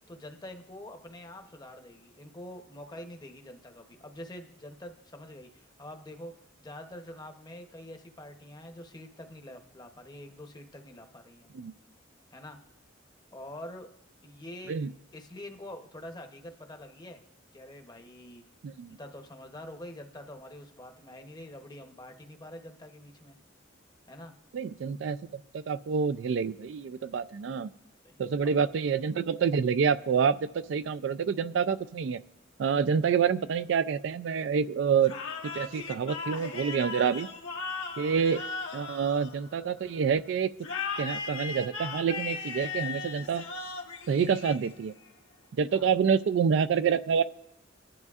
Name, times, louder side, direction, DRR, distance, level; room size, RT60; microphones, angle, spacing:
voice 1, 0.1-6.3 6.6-11.5 12.3-12.6 13.3-13.9 14.2-14.8 15.1-17.2 17.5-18.4 19.0-23.4 24.1-24.3 28.0-28.2 28.4-28.6 45.7-45.9, left 1 dB, 20° left, 5 dB, 0.8 m, -46 dB
voice 2, 18.6-19.0 24.5-25.2 25.5-27.7 28.2-32.2 32.6-35.1 35.4-37.3 38.0-38.4 38.7-40.5 41.0-43.4 44.1-44.9 45.6-47.2, right 6 dB, 65° right, 13 dB, 0.3 m, -27 dB
sound 1, 35.0-39.9 40.6-45.0, left 5 dB, 85° left, 1.4 m, -37 dB
19.5 x 10.5 x 2.4 m, 0.87 s
head